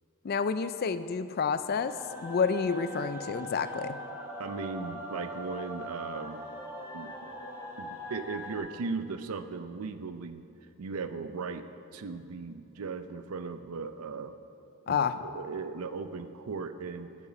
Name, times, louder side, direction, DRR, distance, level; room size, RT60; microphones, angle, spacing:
voice 1, 0.2-4.0 14.9-15.2, left 5 dB, 45° left, 12 dB, 0.4 m, -29 dB
sound 1, 1.7-8.6, equal, 10° right, 1.5 m, -41 dB
voice 2, 4.4-6.4 6.9-7.1 7.8-10.4 10.8-11.7 11.9-14.3 14.9-17.1, right 4 dB, 85° right, 10 dB, 0.5 m, -37 dB
10.0 x 7.4 x 5.9 m, 2.6 s
head